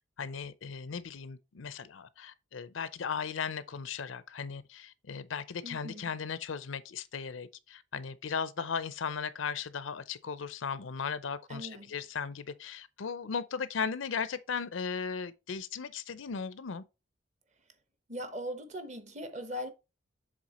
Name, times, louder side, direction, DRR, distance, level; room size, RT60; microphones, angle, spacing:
voice 1, 0.2-16.8, left 6 dB, 85° left, 0.6 m, -37 dB
voice 2, 5.6-6.1 11.5-11.9 18.1-19.7, equal, 35° right, 1.0 m, -40 dB
7.6 x 3.6 x 4.2 m
head